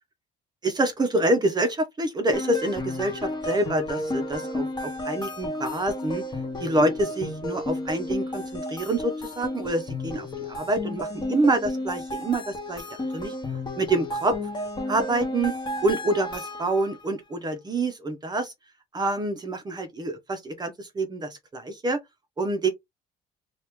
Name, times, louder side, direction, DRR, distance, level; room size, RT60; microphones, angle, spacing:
voice 1, 0.6-6.2 6.6-12.8 13.1-13.3 13.8-14.4 14.9-15.5 15.8-18.5 18.9-22.0 22.4-22.7, right 2 dB, 25° right, 0.8 m, -26 dB
sound 1, 2.3-17.0, left 1 dB, 25° left, 1.0 m, -32 dB
2.9 x 2.5 x 3.5 m
cardioid pair, 110°, 17 cm